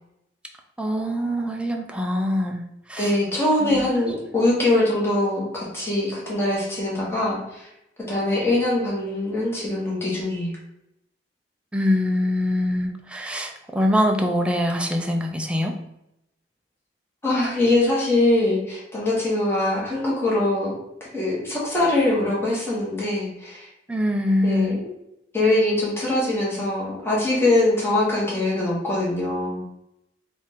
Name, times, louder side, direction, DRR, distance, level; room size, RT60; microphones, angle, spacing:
voice 1, 0.8-2.6 2.9-3.2 3.6-3.8 11.7-15.7 23.9-24.8, left 1 dB, 5° right, 2 dB, 0.3 m, -23 dB
voice 2, 3.0-7.6 8.1-10.5 17.2-20.7 21.0-23.7 24.4-24.9 25.3-29.6, left 2 dB, 15° left, -6 dB, 1.3 m, -22 dB
3.6 x 2.5 x 4.0 m, 0.85 s
head